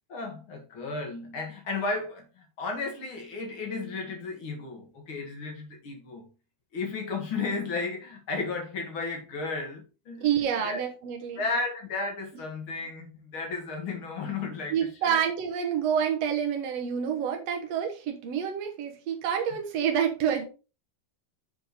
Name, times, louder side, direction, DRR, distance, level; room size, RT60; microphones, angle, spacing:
voice 1, 0.1-6.3 6.7-10.3 10.6-10.8 11.4-15.2, left 3 dB, 45° left, 1.8 m, -34 dB
voice 2, 10.2-11.4 14.7-20.4, right 8 dB, 85° right, 1.4 m, -28 dB
7.8 x 5.0 x 4.0 m
omnidirectional pair, 4.6 m